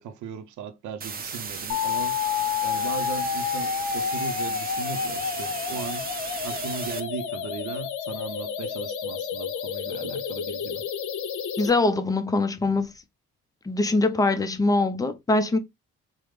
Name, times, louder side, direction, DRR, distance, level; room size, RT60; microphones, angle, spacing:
voice 1, 0.0-2.2 2.6-6.1 6.4-10.8, right 7 dB, 75° right, 0.6 m, -37 dB
sound 1, 1.0-7.0, right 5 dB, 30° right, 0.6 m, -35 dB
sound 2, 1.7-11.7, left 8 dB, 75° left, 0.6 m, -30 dB
voice 2, 11.6-12.9 13.7-15.6, left 2 dB, 10° left, 0.4 m, -23 dB
3.3 x 2.0 x 3.0 m
cardioid pair, 90°, 30 cm